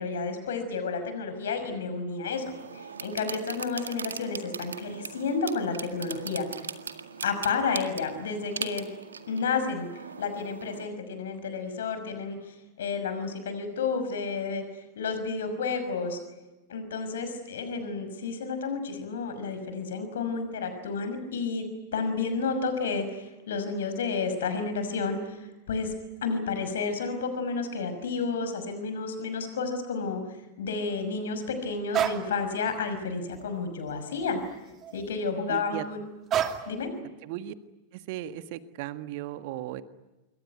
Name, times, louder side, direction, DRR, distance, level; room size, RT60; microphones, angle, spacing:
voice 1, 0.0-2.4 2.7-6.5 7.2-8.9 9.3-9.9 10.2-14.6 15.0-16.2 16.7-21.7 21.9-25.9 26.2-34.4 34.9-36.0 36.7-36.9, left 4 dB, 60° left, 9 dB, 5.9 m, -31 dB
sound 1, 2.3-10.9, right 6 dB, 70° right, 1.9 m, -40 dB
sound 2, 31.9-32.3 32.8-33.0 33.3-34.4 34.7-35.1 36.3-36.8, right 9 dB, 30° right, 2.6 m, -30 dB
voice 2, 35.5-35.9 37.2-37.5 37.9-39.8, right 13 dB, 50° right, 11 dB, 1.6 m, -36 dB
27.0 x 23.0 x 9.5 m, 1.0 s
figure-of-eight pair, 90°, 0 cm